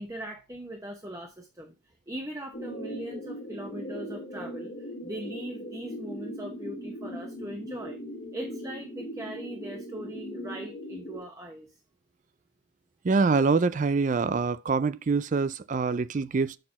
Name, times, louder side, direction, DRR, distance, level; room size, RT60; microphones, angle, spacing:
voice 1, 0.0-1.7 2.1-8.0 8.3-11.7, right 1 dB, 15° right, 0.9 m, -40 dB
sound 1, 2.5-11.2, equal, 45° left, 2.1 m, -39 dB
voice 2, 13.0-16.6, right 4 dB, 40° right, 0.4 m, -25 dB
6.6 x 6.0 x 5.6 m
head